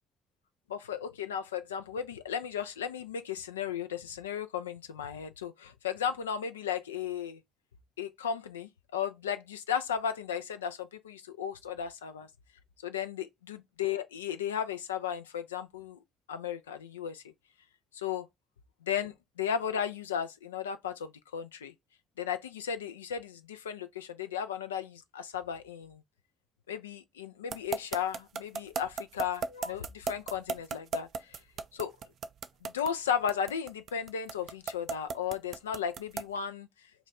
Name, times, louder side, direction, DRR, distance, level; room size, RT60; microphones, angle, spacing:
voice 1, 0.7-7.4 8.0-12.3 12.8-16.0 16.3-17.2 17.9-18.3 18.8-21.7 22.2-26.0 26.7-31.4 31.7-31.9 32.6-36.7, left 8 dB, 80° left, 0.3 m, -35 dB
sound 1, 27.5-36.4, right 5 dB, 55° right, 0.3 m, -35 dB
3.0 x 2.3 x 3.9 m
figure-of-eight pair, 45°, 0 cm